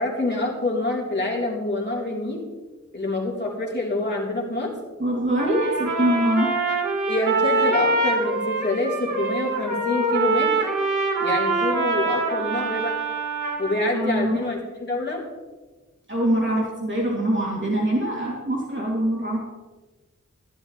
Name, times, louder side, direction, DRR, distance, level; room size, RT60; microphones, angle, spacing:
voice 1, 0.0-2.4 2.9-4.7 7.0-10.5 11.2-13.0 13.6-15.2, left 2 dB, 35° left, -4 dB, 3.4 m, -26 dB
voice 2, 5.0-6.5 13.9-14.4 16.1-19.4, right 1 dB, 40° right, -4 dB, 2.7 m, -23 dB
Trumpet, 5.4-13.8, right 3 dB, 90° right, 1.7 m, -24 dB
12.5 x 11.5 x 3.2 m, 1.2 s
wide cardioid pair, 50°, 30 cm